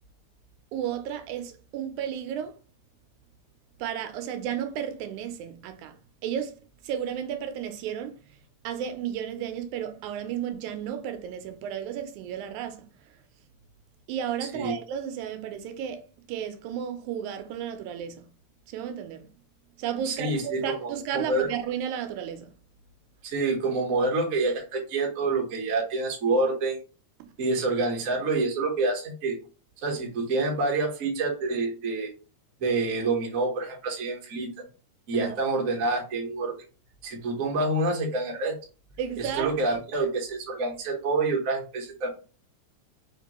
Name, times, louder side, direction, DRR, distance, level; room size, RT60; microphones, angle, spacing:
voice 1, 0.7-2.6 3.8-6.0 6.2-6.6 6.8-8.4 8.6-12.9 14.1-18.3 18.7-19.3 19.8-22.5 35.1-35.4 39.0-39.8, right 9 dB, 85° right, 2.0 m, -33 dB
voice 2, 20.0-21.5 23.2-26.8 27.4-29.3 29.8-32.1 32.6-34.5 35.1-36.5 37.0-38.5 39.2-42.1, right 3 dB, 55° right, 0.9 m, -27 dB
5.1 x 2.9 x 2.9 m
omnidirectional pair, 3.4 m